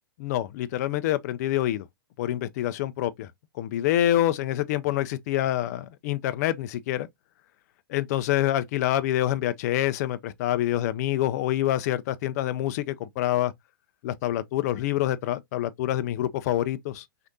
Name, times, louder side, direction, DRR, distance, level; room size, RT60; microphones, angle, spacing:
voice 1, 0.2-1.9 2.2-7.1 7.9-13.5 14.0-17.1, left 13 dB, 45° left, 0.4 m, -26 dB
6.2 x 2.5 x 2.7 m
hypercardioid pair, 110°, 12 cm